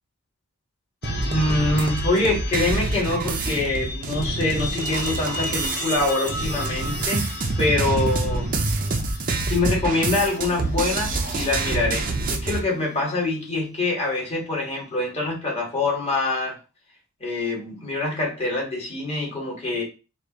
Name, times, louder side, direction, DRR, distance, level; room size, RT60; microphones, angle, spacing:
sound 1, 1.0-13.6, left 3 dB, 45° left, 0.8 m, -36 dB
sound 2, 1.0-12.6, right 3 dB, 40° right, 0.6 m, -26 dB
voice 1, 1.3-7.3 7.6-8.5 9.5-16.6 17.2-19.8, left 2 dB, 25° left, -3 dB, 1.5 m, -25 dB
5.0 x 2.5 x 3.0 m, 0.31 s
head